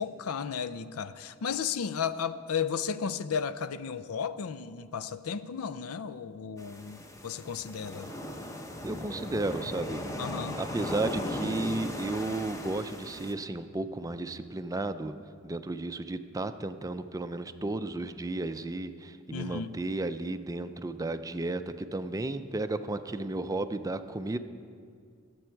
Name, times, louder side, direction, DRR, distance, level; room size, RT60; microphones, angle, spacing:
voice 1, 0.0-8.1 10.2-10.6 19.3-19.7, left 6 dB, 90° left, 0.5 m, -34 dB
sound 1, 6.6-13.3, left 1 dB, 15° left, 0.8 m, -38 dB
voice 2, 8.8-10.0 10.6-15.2 15.4-24.4, right 2 dB, 15° right, 0.4 m, -33 dB
21.0 x 7.9 x 4.6 m
head